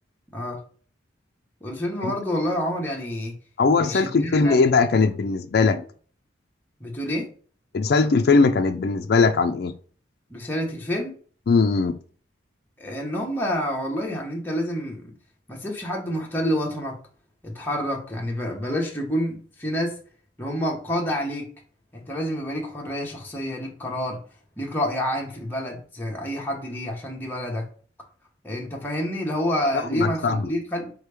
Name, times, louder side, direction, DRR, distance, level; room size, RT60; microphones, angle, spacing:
voice 1, 1.6-3.3 3.8-4.5 6.8-7.3 10.3-11.1 12.8-15.1 15.5-17.0 17.4-20.0 20.4-21.5 21.9-24.2 24.6-27.7 28.4-30.9, equal, 10° left, 1.0 m, -28 dB
voice 2, 3.6-5.8 7.7-9.7 11.5-12.0 29.7-30.5, left 4 dB, 55° left, 0.4 m, -20 dB
4.2 x 3.1 x 3.4 m
head